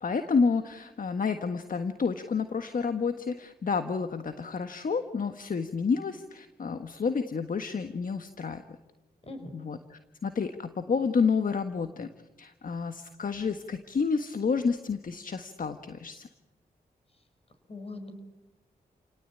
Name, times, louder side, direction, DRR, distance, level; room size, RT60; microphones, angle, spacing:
voice 1, 0.0-8.6 9.5-9.8 10.2-12.1 12.4-16.3, left 5 dB, 55° left, 8 dB, 1.6 m, -29 dB
voice 2, 17.7-18.1, left 2 dB, 35° left, 8 dB, 6.4 m, -41 dB
30.0 x 18.5 x 8.9 m, 1.1 s
cardioid pair, 50°, 17 cm